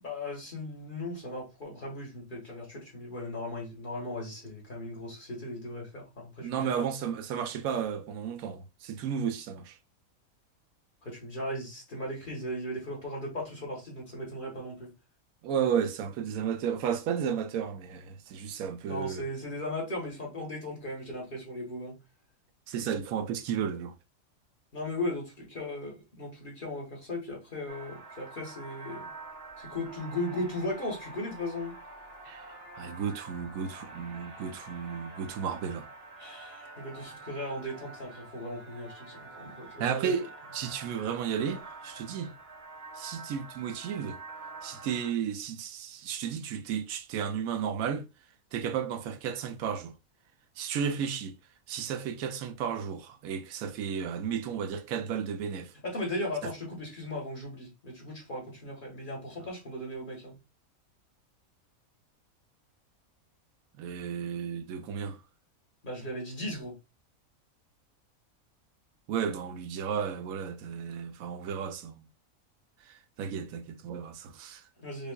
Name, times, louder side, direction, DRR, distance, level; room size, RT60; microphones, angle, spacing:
voice 1, 0.0-6.8 11.0-14.9 18.9-22.0 24.7-29.1 29.6-31.7 36.2-40.1 55.8-60.4 65.8-66.8 74.8-75.1, left 1 dB, 35° left, 1.6 m, -37 dB
voice 2, 6.4-9.8 15.4-19.2 22.7-23.9 32.2-35.9 39.8-42.3 42.9-44.2 44.6-48.1 48.5-49.9 50.6-51.4 51.7-55.7 56.4-56.5 63.8-65.2 69.1-72.1 72.8-74.6, right 7 dB, 75° right, 1.0 m, -33 dB
sound 1, 27.7-45.1, right 3 dB, 55° right, 0.9 m, -47 dB
5.1 x 2.5 x 2.2 m
omnidirectional pair, 1.5 m